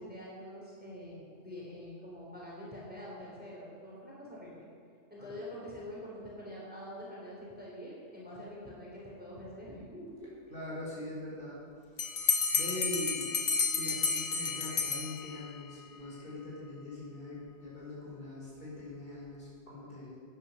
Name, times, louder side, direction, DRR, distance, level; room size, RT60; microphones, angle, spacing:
voice 1, 0.0-4.7 5.1-10.4, left 1 dB, 10° right, -6 dB, 3.5 m, -45 dB
voice 2, 10.5-11.7 12.5-13.3 13.7-20.2, left 1 dB, 50° left, -7 dB, 4.8 m, -42 dB
Bell, 12.0-15.6, left 5 dB, 80° left, 1.3 m, -31 dB
11.5 x 10.0 x 7.0 m, 2.2 s
omnidirectional pair, 1.2 m